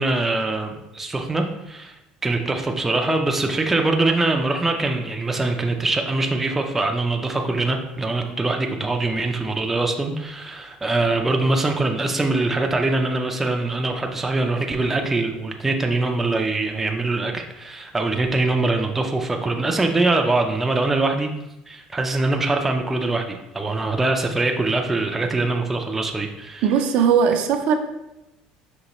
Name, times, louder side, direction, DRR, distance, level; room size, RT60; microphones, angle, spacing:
voice 1, 0.0-21.3 21.7-26.7, right 2 dB, 10° right, 3 dB, 0.4 m, -23 dB
voice 2, 26.6-27.8, right 7 dB, 65° right, 5 dB, 0.5 m, -18 dB
5.3 x 3.1 x 2.9 m, 0.92 s
cardioid pair, 135°, 2 cm